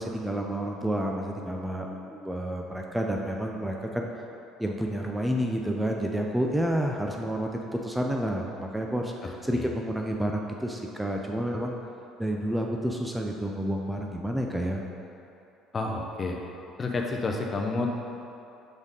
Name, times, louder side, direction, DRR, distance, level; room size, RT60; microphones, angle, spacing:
voice 1, 0.0-4.1 4.6-11.7 12.2-14.8, equal, 5° right, 1 dB, 0.5 m, -30 dB
voice 2, 9.2-9.8 15.7-16.4 16.8-17.9, left 3 dB, 35° left, 1 dB, 0.7 m, -30 dB
5.2 x 5.0 x 4.0 m, 2.8 s
supercardioid pair, 75°, 0 cm